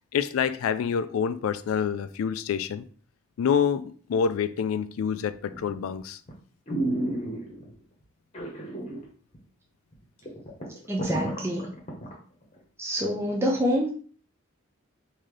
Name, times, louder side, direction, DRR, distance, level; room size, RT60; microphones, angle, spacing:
voice 1, 0.1-2.8 3.4-6.2, left 7 dB, 85° left, 0.3 m, -27 dB
sound 1, 5.5-5.8 6.3-6.4 6.7-7.7 8.3-9.0 9.3-9.4 9.9-10.0 10.2-12.1 12.6-12.7, right 1 dB, 30° left, 1.0 m, -31 dB
voice 2, 10.9-11.7 12.8-13.9, equal, 10° right, 0.5 m, -26 dB
3.7 x 2.7 x 3.2 m
head